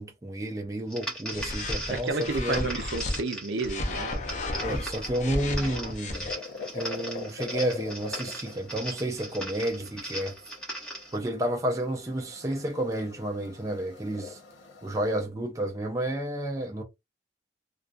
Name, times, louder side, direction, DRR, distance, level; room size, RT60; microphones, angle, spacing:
voice 1, 0.0-2.1 2.4-2.7 4.6-6.3 6.7-10.3 11.1-14.4 14.8-16.8, right 1 dB, 15° right, 0.3 m, -31 dB
sound 1, 0.9-11.2, right 1 dB, 5° left, 0.7 m, -39 dB
sound 2, 1.3-3.2 3.6-6.3, left 2 dB, 40° left, 0.5 m, -33 dB
voice 2, 1.9-4.2, right 3 dB, 75° right, 0.6 m, -31 dB
sound 3, 5.5-15.3, left 4 dB, 90° left, 0.6 m, -43 dB
2.3 x 2.3 x 2.4 m
head